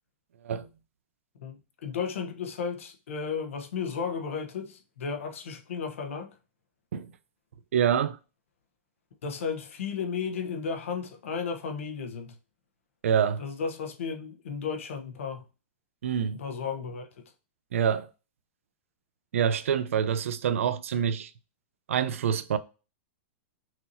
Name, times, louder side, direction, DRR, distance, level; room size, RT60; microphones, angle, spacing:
voice 1, 1.4-6.3 9.2-12.4 13.4-15.4 16.3-17.2, left 6 dB, 80° left, 1.1 m, -34 dB
voice 2, 7.7-8.2 13.0-13.4 16.0-16.4 17.7-18.1 19.3-21.3 21.9-22.6, right 8 dB, 85° right, 0.5 m, -26 dB
5.9 x 2.9 x 2.7 m
supercardioid pair, 175°, 7 cm